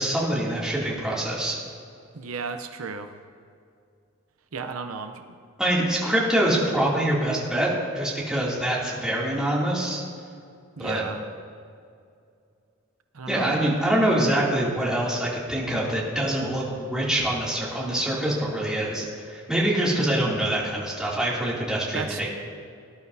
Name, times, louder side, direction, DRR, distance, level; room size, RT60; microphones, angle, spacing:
voice 1, 0.0-1.6 5.6-7.7 7.9-10.0 10.8-11.0 13.3-22.3, right 1 dB, 5° right, -6 dB, 2.6 m, -25 dB
voice 2, 2.1-3.1 4.5-5.3 10.8-11.2 13.1-13.6 21.9-22.3, right 5 dB, 80° right, 7 dB, 0.7 m, -34 dB
19.0 x 11.5 x 2.7 m, 2.4 s
head